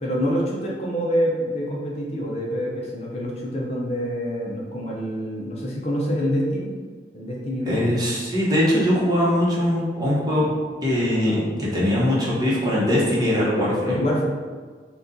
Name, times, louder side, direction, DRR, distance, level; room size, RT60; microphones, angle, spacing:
voice 1, 0.0-6.7 7.1-7.8 10.3-10.5 13.9-14.2, equal, 35° left, -4 dB, 0.6 m, -26 dB
voice 2, 7.6-10.5 10.8-14.0, left 1 dB, 20° right, -6 dB, 0.9 m, -21 dB
4.1 x 2.3 x 3.8 m, 1.5 s
head